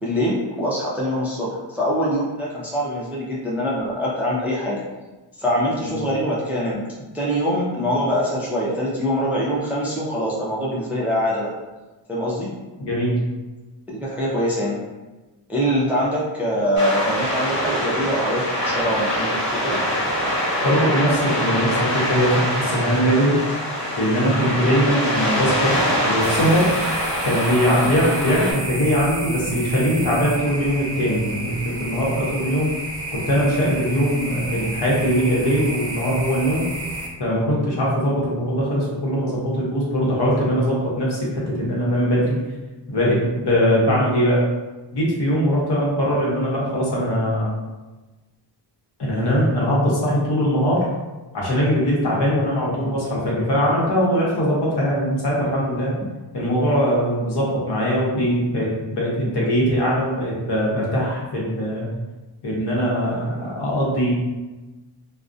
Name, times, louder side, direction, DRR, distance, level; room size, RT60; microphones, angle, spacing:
voice 1, 0.0-4.8 5.4-6.8 7.1-11.5 12.1-12.5 13.9-14.8 15.5-19.8, equal, 5° right, -6 dB, 0.3 m, -24 dB
voice 2, 12.8-13.2 20.6-23.4 24.0-26.7 27.2-32.7 33.1-36.6 37.2-42.4 42.9-44.4 44.9-47.5 49.0-50.9 51.3-55.9 56.3-61.9 62.4-64.1, equal, 60° left, -5 dB, 0.8 m, -21 dB
sound 1, 16.8-28.5, equal, 40° left, 1.0 m, -24 dB
sound 2, 26.2-37.1, right 2 dB, 40° right, 0.6 m, -31 dB
2.3 x 2.0 x 2.5 m, 1.2 s
wide cardioid pair, 145°, 45 cm